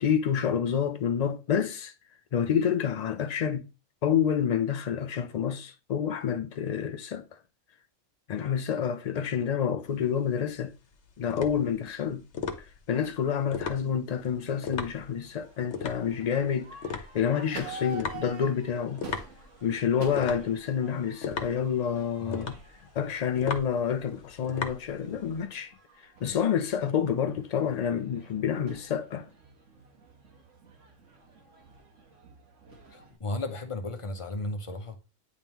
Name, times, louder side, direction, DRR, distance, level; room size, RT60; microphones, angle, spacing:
voice 1, 0.0-1.9 2.3-3.7 4.0-7.2 8.3-10.7 11.2-12.2 12.9-19.0 19.6-22.6 23.0-29.3, left 8 dB, 85° left, 0.3 m, -28 dB
sound 1, 9.9-25.4, left 5 dB, 65° left, 1.2 m, -38 dB
Crowd / Fireworks, 14.2-33.2, right 3 dB, 75° right, 1.6 m, -49 dB
voice 2, 32.9-35.0, left 2 dB, 30° left, 0.8 m, -35 dB
9.4 x 3.6 x 2.9 m
omnidirectional pair, 1.3 m